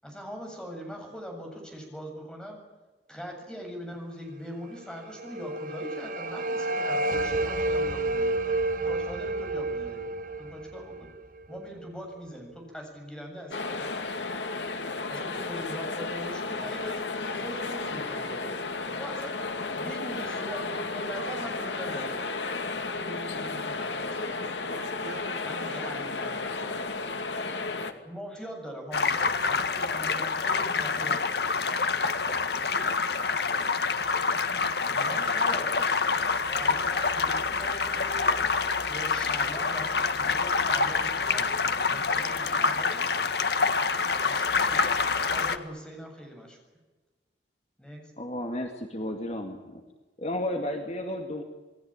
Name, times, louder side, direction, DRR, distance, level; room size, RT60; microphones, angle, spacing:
voice 1, 0.0-2.6 3.1-8.6 8.8-11.1 11.5-13.9 15.1-17.0 17.3-19.3 19.8-22.4 22.9-24.5 25.4-26.8 28.0-31.4 34.8-36.0 36.4-38.4 38.8-43.3 44.2-44.9 45.2-46.6 47.8-48.0, equal, 5° left, 7.7 m, -42 dB
sound 1, 4.9-11.9, right 2 dB, 50° right, 1.2 m, -30 dB
sound 2, 13.5-27.9, left 3 dB, 85° left, 2.4 m, -33 dB
voice 2, 24.7-27.2, right 2 dB, 75° right, 2.8 m, -46 dB
sound 3, 28.9-45.6, left 4 dB, 65° left, 1.7 m, -26 dB
voice 3, 48.2-49.8 50.2-51.4, left 1 dB, 40° left, 2.4 m, -33 dB
28.5 x 20.0 x 9.0 m
head